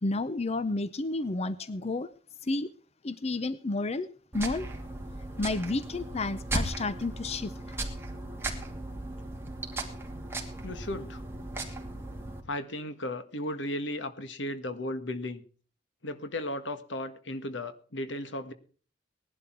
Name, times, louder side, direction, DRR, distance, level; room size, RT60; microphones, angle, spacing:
voice 1, 0.0-2.1 2.4-2.7 3.0-4.1 4.3-4.7 5.4-7.8, left 2 dB, 35° left, 14 dB, 0.7 m, -31 dB
sound 1, 4.3-12.4, right 2 dB, 15° right, 2.5 m, -37 dB
voice 2, 10.6-11.2 12.5-15.4 16.0-18.5, left 1 dB, 85° left, 10 dB, 1.7 m, -35 dB
18.5 x 11.5 x 4.6 m, 0.42 s
head